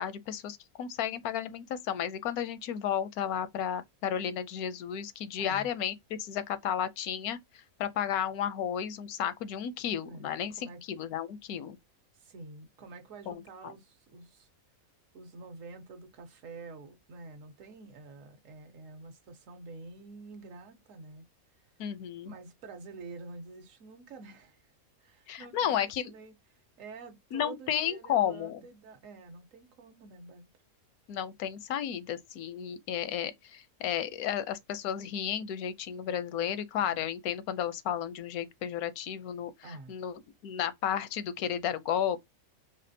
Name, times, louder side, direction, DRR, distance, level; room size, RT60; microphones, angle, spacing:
voice 1, 0.0-11.8 13.3-13.4 21.8-22.3 25.3-26.1 27.3-28.6 31.1-42.2, left 9 dB, 85° left, 1.1 m, -33 dB
voice 2, 5.4-5.7 10.0-10.8 12.1-14.5 15.1-21.2 22.2-24.7 25.0-30.5 36.8-37.0 39.6-40.0, right 3 dB, 65° right, 1.3 m, -48 dB
4.2 x 3.2 x 2.7 m
omnidirectional pair, 1.5 m